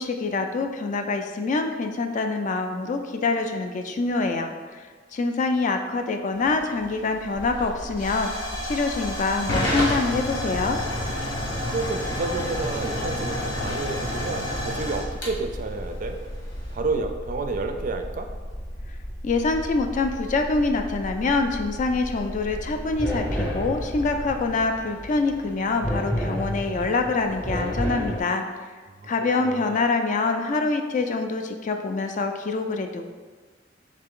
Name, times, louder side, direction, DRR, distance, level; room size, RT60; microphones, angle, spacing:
voice 1, 0.0-4.8 5.1-8.3 8.6-10.8 19.2-28.4 29.1-33.1, left 3 dB, 40° left, 6 dB, 0.4 m, -25 dB
Hiss / Fire / Tick, 6.3-16.7, left 1 dB, 90° left, 1.2 m, -30 dB
sound 1, 7.3-24.5, equal, 70° left, 0.7 m, -37 dB
voice 2, 11.7-16.2 16.7-18.3 29.0-29.8, right 3 dB, 45° right, 7 dB, 0.4 m, -30 dB
sound 2, 22.4-28.2, equal, 10° left, 0.7 m, -31 dB
3.7 x 3.4 x 3.6 m, 1.4 s
head